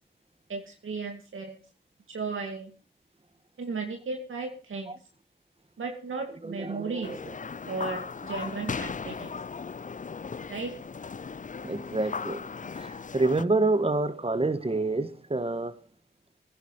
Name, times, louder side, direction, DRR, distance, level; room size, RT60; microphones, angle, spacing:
voice 1, 0.5-1.6 2.1-2.7 3.6-4.9 5.8-7.2 7.6-9.3 10.5-10.7, right 4 dB, 90° right, 2.4 m, -35 dB
voice 2, 6.4-7.2 11.6-12.4 12.7-15.8, right 2 dB, 30° right, 1.5 m, -28 dB
sound 1, 7.0-13.4, left 5 dB, 40° left, 0.5 m, -37 dB
21.0 x 10.5 x 3.1 m
cardioid pair, 45°, 20 cm